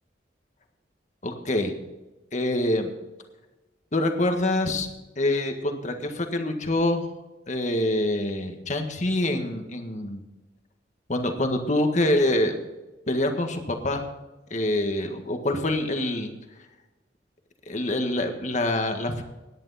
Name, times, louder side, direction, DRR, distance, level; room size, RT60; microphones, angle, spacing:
voice 1, 1.2-1.7 2.3-2.9 3.9-4.9 5.2-7.1 7.5-10.2 11.1-12.6 13.1-14.0 14.5-16.3 17.7-19.2, left 1 dB, 45° left, 5 dB, 1.7 m, -25 dB
17.5 x 10.5 x 4.2 m, 1.1 s
head